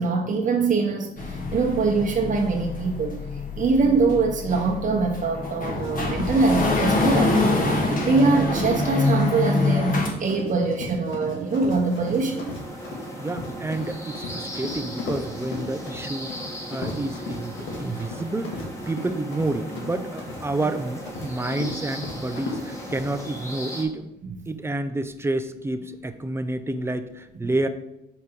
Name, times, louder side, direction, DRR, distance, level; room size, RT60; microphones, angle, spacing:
voice 1, 0.0-12.5 17.8-18.0, right 4 dB, 40° right, -1 dB, 0.9 m, -23 dB
sound 1, 1.2-10.1, left 2 dB, 45° left, 1.6 m, -25 dB
Run, 5.6-23.0, left 3 dB, 75° left, 1.8 m, -36 dB
sound 2, 11.4-23.8, equal, 15° left, 1.5 m, -38 dB
voice 2, 13.2-24.1 24.5-27.7, right 2 dB, 10° right, 9 dB, 0.5 m, -29 dB
5.5 x 4.8 x 4.5 m, 0.87 s
cardioid pair, 90°, 20 cm